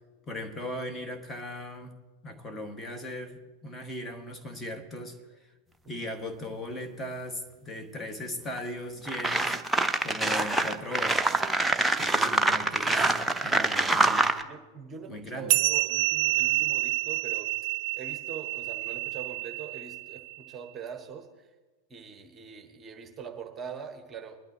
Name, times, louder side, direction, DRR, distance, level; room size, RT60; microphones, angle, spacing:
voice 1, 0.3-2.0 2.2-5.2 5.9-9.6 10.0-11.4 12.0-14.3 15.1-15.6, left 1 dB, 15° left, 4 dB, 1.7 m, -38 dB
sound 1, 8.6-8.7 9.1-14.4, right 2 dB, 5° right, 0.8 m, -25 dB
voice 2, 12.4-12.8 14.4-21.5 21.9-24.4, right 6 dB, 20° right, 5 dB, 1.2 m, -43 dB
sound 2, 15.5-20.4, right 18 dB, 45° right, 0.3 m, -28 dB
21.5 x 12.0 x 2.9 m, 1.2 s
figure-of-eight pair, 90°, 0 cm